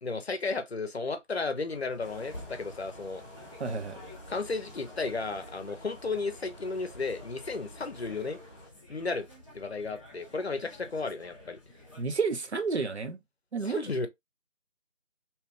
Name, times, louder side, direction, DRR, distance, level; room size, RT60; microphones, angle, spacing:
voice 1, 0.0-3.2 4.3-8.4 8.9-9.3 9.5-11.6 13.6-14.1, left 3 dB, 55° left, 0.7 m, -33 dB
sound 1, 1.6-12.0, left 1 dB, 25° right, 0.7 m, -51 dB
sound 2, 2.0-8.7, equal, 25° left, 0.9 m, -50 dB
voice 2, 3.6-4.0 12.0-13.2 13.5-14.1, right 4 dB, 60° right, 0.7 m, -31 dB
2.8 x 2.4 x 3.4 m
figure-of-eight pair, 165°, 38 cm